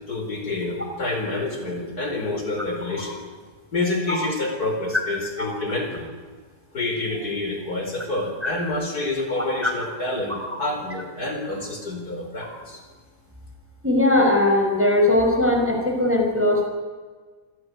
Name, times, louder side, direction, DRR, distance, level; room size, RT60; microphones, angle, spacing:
voice 1, 0.1-3.2 3.7-6.1 6.7-12.8, left 2 dB, 65° left, 3 dB, 5.1 m, -28 dB
voice 2, 13.8-16.7, left 1 dB, 5° right, 2 dB, 5.3 m, -19 dB
25.5 x 18.0 x 9.6 m, 1.4 s
omnidirectional pair, 1.8 m